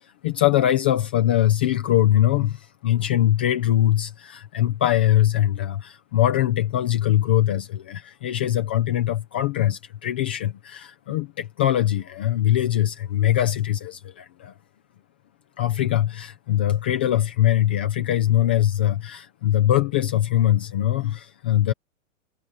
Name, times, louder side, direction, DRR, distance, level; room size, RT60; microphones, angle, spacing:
voice 1, 0.0-14.5 15.6-21.7, left 12 dB, 10° left, 0.3 m, -22 dB
hypercardioid pair, 150°, 39 cm